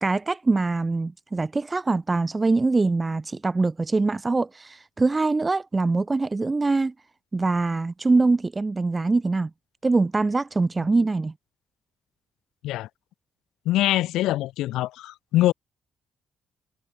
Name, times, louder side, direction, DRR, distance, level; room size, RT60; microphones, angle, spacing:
voice 1, 0.0-6.9 7.3-9.5 9.8-11.3, right 3 dB, 25° right, 0.9 m, -23 dB
voice 2, 13.7-15.5, left 15 dB, 90° left, 1.8 m, -23 dB
cardioid pair, 90°, 0 cm